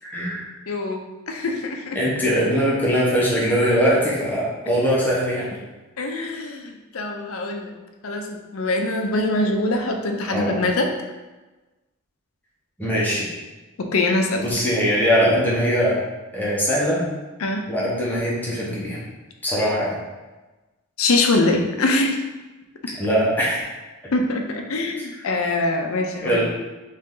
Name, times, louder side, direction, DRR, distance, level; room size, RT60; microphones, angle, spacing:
voice 1, 0.0-0.4 1.9-5.6 10.3-10.6 12.8-13.3 14.4-16.0 16.3-17.0 17.7-19.0 19.4-19.9 23.0-23.7 26.2-26.5, equal, 10° left, -7 dB, 1.0 m, -21 dB
voice 2, 0.7-1.0 1.3-2.0 6.0-7.7 8.0-10.9 13.8-14.4 17.4-17.7 21.0-22.2 24.1-26.5, left 2 dB, 70° left, 3 dB, 0.6 m, -23 dB
3.9 x 3.2 x 3.7 m, 1.2 s
head